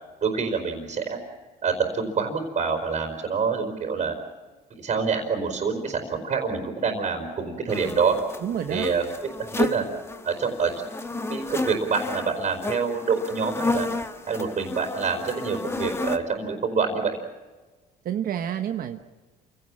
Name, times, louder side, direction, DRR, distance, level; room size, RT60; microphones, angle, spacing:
voice 1, 0.2-1.2 1.6-4.1 4.7-8.2 8.7-9.0 9.4-9.8 10.2-10.7 11.1-13.9 14.3-17.2, right 5 dB, 45° right, 1 dB, 4.5 m, -26 dB
sound 1, 7.7-16.2, left 2 dB, 15° left, 1.4 m, -32 dB
voice 2, 8.4-8.9 18.0-19.0, right 9 dB, 60° right, 6 dB, 1.1 m, -28 dB
28.0 x 17.5 x 7.4 m, 1.3 s
cardioid pair, 110°, 17 cm